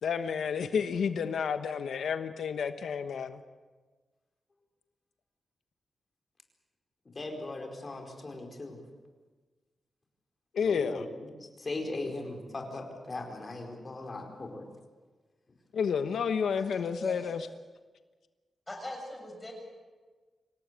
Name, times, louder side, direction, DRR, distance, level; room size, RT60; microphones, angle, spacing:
voice 1, 0.0-3.4 10.5-11.1 15.7-17.5, left 6 dB, 90° left, 9 dB, 1.1 m, -30 dB
voice 2, 7.1-8.8 10.6-11.0 11.6-14.6, left 2 dB, 30° left, 2 dB, 4.7 m, -38 dB
voice 3, 17.0-17.3 18.7-19.5, left 1 dB, 15° left, 2 dB, 7.2 m, -40 dB
26.0 x 18.0 x 8.3 m, 1.3 s
wide cardioid pair, 130°, 0 cm